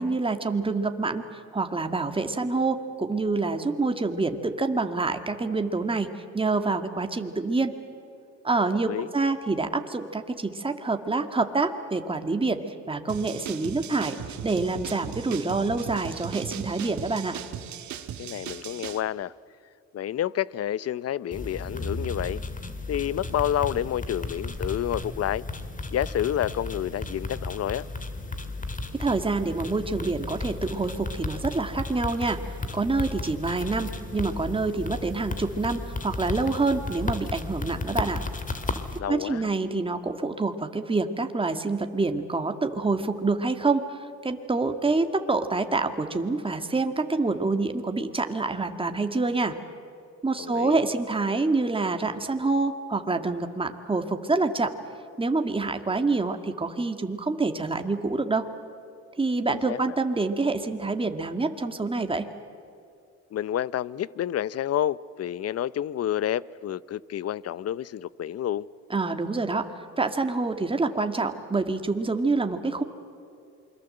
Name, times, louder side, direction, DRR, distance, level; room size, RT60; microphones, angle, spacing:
voice 1, 0.0-6.1 6.3-7.7 8.4-12.6 12.9-14.2 14.4-17.4 28.9-32.4 32.7-38.2 39.1-43.8 44.2-49.5 50.2-54.7 55.2-58.5 59.2-62.3 68.9-69.7 70.0-72.8, right 3 dB, 15° right, 1.9 m, -27 dB
sound 1, 13.1-19.0, right 9 dB, 70° right, 1.7 m, -38 dB
voice 2, 18.2-19.3 19.9-22.4 22.9-25.4 25.9-27.8 39.0-39.5 50.4-50.8 59.5-60.0 63.3-68.7, left 11 dB, 55° left, 0.7 m, -29 dB
sound 2, 21.3-39.0, left 2 dB, 25° left, 2.1 m, -34 dB
28.0 x 22.5 x 7.8 m
cardioid pair, 90°, 30 cm